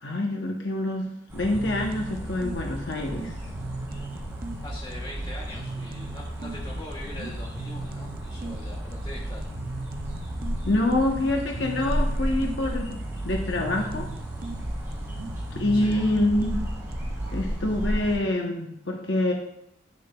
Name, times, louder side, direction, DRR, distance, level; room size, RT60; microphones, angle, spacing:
voice 1, 0.0-3.4 10.7-14.1 15.5-16.6 17.3-19.3, left 1 dB, 80° left, 1 dB, 0.9 m, -26 dB
sound 1, 1.3-18.2, equal, 15° right, 2.4 m, -34 dB
sound 2, 1.4-17.4, right 2 dB, 50° right, 0.5 m, -37 dB
voice 2, 4.6-9.5 15.7-16.0, left 1 dB, 25° left, -3 dB, 2.0 m, -42 dB
9.9 x 6.6 x 2.3 m, 0.75 s
head